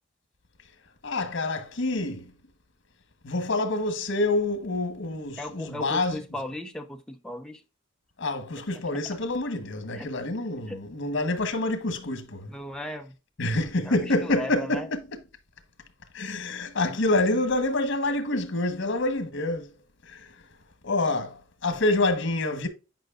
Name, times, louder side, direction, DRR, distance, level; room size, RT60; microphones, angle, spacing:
voice 1, 1.0-2.3 3.2-6.1 8.2-12.5 13.4-15.0 16.1-19.7 20.0-20.4 20.8-22.7, left 2 dB, 85° left, 1.2 m, -27 dB
voice 2, 5.4-7.6 8.6-9.2 9.9-10.1 10.7-10.8 12.5-13.1 13.8-14.9, left 1 dB, 5° left, 0.8 m, -37 dB
9.2 x 5.3 x 2.5 m
head